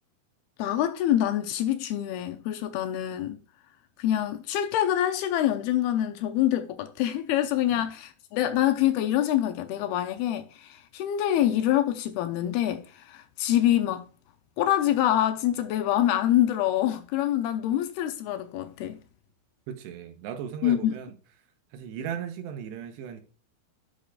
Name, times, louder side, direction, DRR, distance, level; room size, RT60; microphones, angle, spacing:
voice 1, 0.6-3.4 4.0-14.1 14.6-19.0 20.6-21.0, left 12 dB, 80° left, 2.4 m, -25 dB
voice 2, 19.7-21.1 21.7-23.2, right 8 dB, 90° right, 3.1 m, -37 dB
9.9 x 6.6 x 2.4 m
omnidirectional pair, 4.8 m